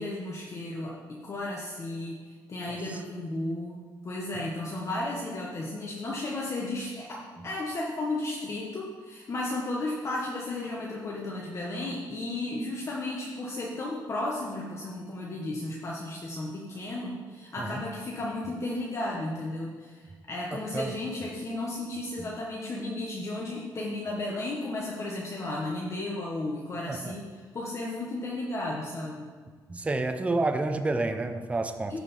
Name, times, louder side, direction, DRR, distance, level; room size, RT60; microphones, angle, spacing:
voice 1, 0.0-2.2 2.5-29.3 31.9-32.0, left 2 dB, 35° left, -3 dB, 1.3 m, -34 dB
voice 2, 20.5-20.9 22.2-22.3 26.9-27.1 29.7-31.9, right 2 dB, 15° right, 6 dB, 0.7 m, -29 dB
14.5 x 5.1 x 5.5 m, 1.5 s
cardioid pair, 135°, 8 cm